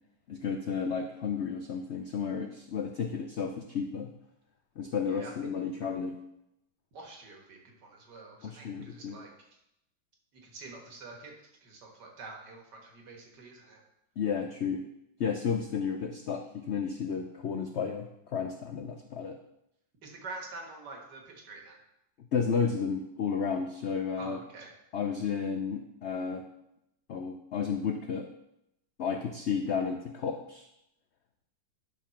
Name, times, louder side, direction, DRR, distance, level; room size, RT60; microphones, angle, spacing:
voice 1, 0.3-4.1 4.8-6.2 8.4-9.2 14.2-14.8 15.2-19.4 22.3-24.4 24.9-26.5 27.1-28.3 29.0-30.7, left 6 dB, 75° left, 5 dB, 0.6 m, -32 dB
voice 2, 6.9-9.3 10.4-13.8 20.0-21.8 24.2-24.7, right 3 dB, 75° right, 1 dB, 2.1 m, -46 dB
10.5 x 3.7 x 5.8 m, 0.82 s
omnidirectional pair, 1.9 m